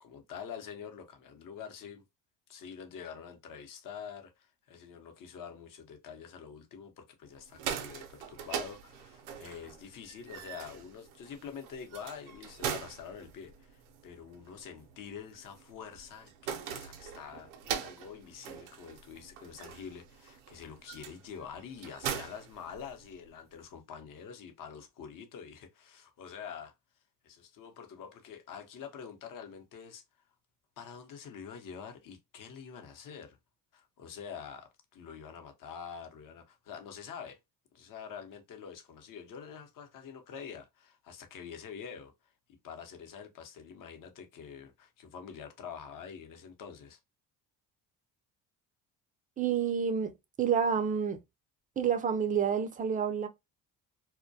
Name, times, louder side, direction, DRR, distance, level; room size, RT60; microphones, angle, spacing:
voice 1, 0.0-2.0 2.5-26.7 27.2-30.0 30.8-33.4 33.7-37.4 37.7-42.1 42.6-47.0, left 7 dB, 50° left, 0.8 m, -46 dB
sound 1, 7.4-23.3, right 8 dB, 90° right, 0.6 m, -42 dB
voice 2, 49.4-50.1 50.4-51.2 51.8-53.3, right 7 dB, 20° right, 0.4 m, -28 dB
2.2 x 2.1 x 2.6 m
supercardioid pair, 70°, 41 cm